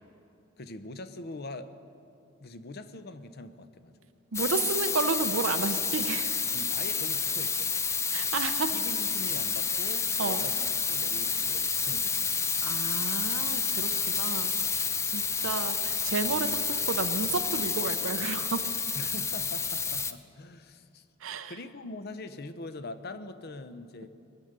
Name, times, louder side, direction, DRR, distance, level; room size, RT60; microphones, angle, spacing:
voice 1, 0.6-1.8 2.4-4.0 6.5-7.7 8.7-12.6 13.8-14.0 19.0-21.1 21.4-24.1, left 2 dB, 50° left, 11 dB, 0.7 m, -43 dB
sound 1, 4.3-20.1, left 5 dB, 15° left, 0.3 m, -29 dB
voice 2, 4.3-6.4 8.1-8.8 10.2-10.4 12.6-14.5 15.1-18.7 21.2-21.6, right 4 dB, 70° right, 8 dB, 0.6 m, -32 dB
22.0 x 8.1 x 6.6 m, 2.7 s
head